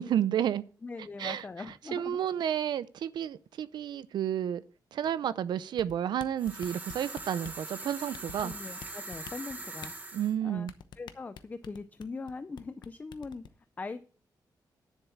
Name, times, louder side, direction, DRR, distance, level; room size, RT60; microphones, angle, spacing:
voice 1, 0.0-0.6 1.2-1.4 1.9-4.6 4.9-8.5 10.1-10.7, right 10 dB, 85° right, 0.5 m, -31 dB
voice 2, 0.8-2.2 8.4-9.9 10.4-10.7 11.0-13.4 13.8-14.0, left 4 dB, 20° left, 0.5 m, -41 dB
sound 1, 5.8-7.6 8.1-8.9 9.1-9.9 10.7-12.3 12.6-12.9 13.1-13.5, left 8 dB, 80° left, 0.8 m, -45 dB
sound 2, 6.4-10.3, right 2 dB, 20° right, 1.4 m, -42 dB
10.0 x 7.3 x 5.7 m
wide cardioid pair, 170°, 7 cm